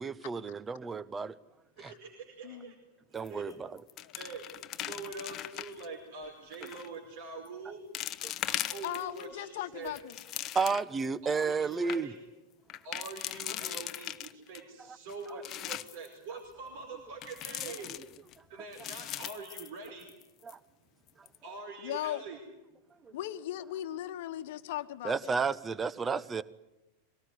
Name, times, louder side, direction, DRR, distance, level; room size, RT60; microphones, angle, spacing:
voice 1, 0.0-1.3 1.8-1.9 3.1-3.7 10.5-12.1 20.4-20.6 25.0-26.4, right 5 dB, 15° right, 1.0 m, -32 dB
voice 2, 1.9-2.7 3.3-3.4 4.2-4.5 4.7-7.8 8.5-10.0 11.2-12.2 12.8-17.9 18.5-20.1 21.4-22.4, right 4 dB, 50° right, 4.9 m, -44 dB
sound 1, 3.2-3.5 3.8-5.9 6.5-6.9 7.4-7.5 7.9-9.3 9.7-11.0 11.4-11.5 11.7-12.0 12.7-14.6 15.1-16.1 17.2-18.4 18.7-20.2 20.5-20.6 21.1-21.4, left 12 dB, 35° left, 0.9 m, -39 dB
voice 3, 8.8-10.2 10.5-10.6 13.5-13.8 21.8-22.2 23.1-25.4 26.0-26.2, left 13 dB, 50° left, 1.3 m, -38 dB
24.0 x 19.0 x 9.8 m
figure-of-eight pair, 90°, 0 cm